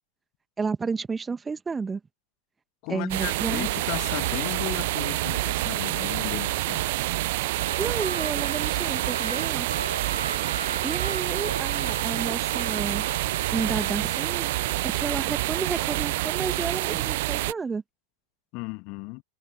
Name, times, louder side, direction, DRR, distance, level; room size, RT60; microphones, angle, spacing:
voice 1, 0.6-2.0 2.9-3.7 7.8-9.7 10.8-13.0 13.5-14.5 14.8-17.8, right 5 dB, 15° right, 1.8 m, -31 dB
voice 2, 2.8-6.9 18.5-19.2, left 31 dB, 45° left, 2.1 m, -35 dB
sound 1, 3.1-17.5, right 19 dB, 50° right, 0.4 m, -27 dB
Trumpet, 7.5-15.1, right 1 dB, 85° right, 1.5 m, -38 dB
figure-of-eight pair, 90°, 0 cm